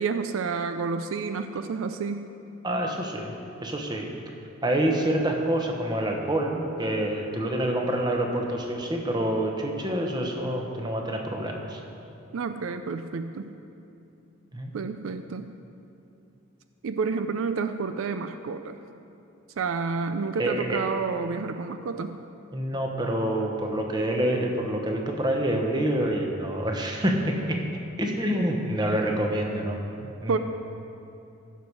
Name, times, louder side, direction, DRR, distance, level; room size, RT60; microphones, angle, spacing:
voice 1, 0.0-2.3 12.3-13.6 14.7-15.6 16.8-18.8 19.6-22.2 30.3-30.4, right 5 dB, 75° right, 9 dB, 0.4 m, -30 dB
voice 2, 2.6-3.3 3.6-4.2 4.6-11.8 14.5-14.7 20.4-20.8 22.5-27.6 28.0-29.8 30.2-30.4, right 1 dB, 20° right, 1 dB, 1.1 m, -27 dB
15.5 x 6.7 x 4.7 m, 2.7 s
head